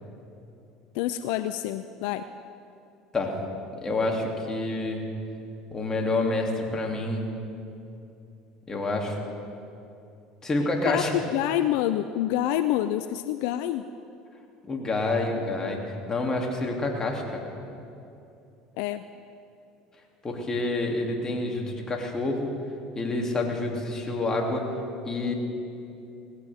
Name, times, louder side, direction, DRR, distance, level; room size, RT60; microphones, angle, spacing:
voice 1, 0.9-2.2 10.8-11.0 11.3-13.8 18.8-19.0, left 12 dB, 70° left, 11 dB, 0.4 m, -27 dB
voice 2, 3.8-5.0 5.7-7.3 8.7-9.2 10.4-11.2 14.7-17.5 20.2-22.5 22.9-24.7 25.0-25.3, left 2 dB, 25° left, 1 dB, 2.7 m, -28 dB
19.0 x 16.0 x 3.6 m, 2.7 s
hypercardioid pair, 80°, 2 cm